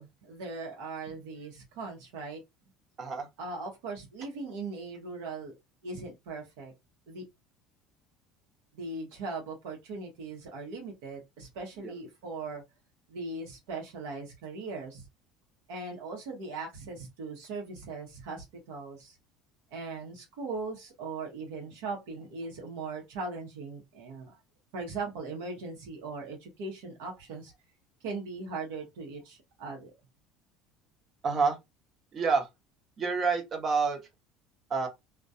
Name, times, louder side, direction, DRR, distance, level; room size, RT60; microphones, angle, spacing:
voice 1, 0.0-2.4 3.4-5.5 5.8-6.7 7.1-7.2 8.7-12.6 13.1-15.1 15.7-19.2 19.7-24.4 24.7-27.5 28.0-29.9, right 3 dB, 80° right, 0.8 m, -39 dB
voice 2, 31.2-31.6 32.1-32.5 33.0-34.0 34.7-34.9, right 4 dB, 40° right, 0.8 m, -27 dB
2.3 x 2.2 x 2.6 m
supercardioid pair, 90°, 0 cm